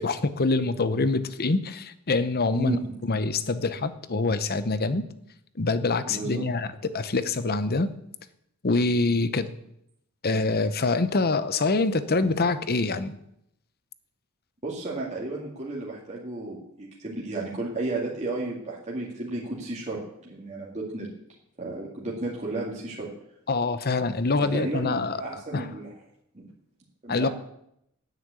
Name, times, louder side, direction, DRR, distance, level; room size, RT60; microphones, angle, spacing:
voice 1, 0.0-2.8 3.0-5.0 5.6-6.7 6.9-7.9 8.6-9.5 10.2-13.2 23.5-25.2 25.5-25.7 27.1-27.3, left 3 dB, 45° left, 13 dB, 0.8 m, -25 dB
voice 2, 6.1-6.5 14.6-21.1 21.6-23.1 24.4-25.9 26.3-26.5 27.0-27.3, right 2 dB, 30° right, -4 dB, 2.2 m, -33 dB
9.5 x 9.2 x 8.2 m, 0.77 s
head